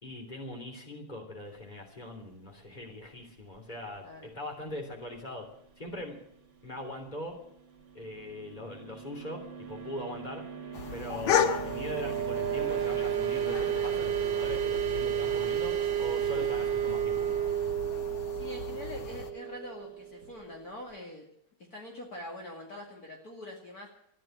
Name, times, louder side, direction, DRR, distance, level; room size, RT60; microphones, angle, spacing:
voice 1, 0.0-5.5 5.8-6.2 6.6-7.4 7.9-10.4 10.9-17.2, left 1 dB, 20° left, 2 dB, 3.4 m, -41 dB
voice 2, 4.0-4.3 18.3-21.3 21.7-23.9, left 1 dB, 50° left, -1 dB, 2.7 m, -44 dB
sound 1, 8.0-20.5, right 10 dB, 70° right, 2.2 m, -32 dB
sound 2, 10.7-19.3, left 7 dB, 80° left, 1.9 m, -35 dB
14.5 x 10.0 x 9.1 m, 0.75 s
omnidirectional pair, 2.2 m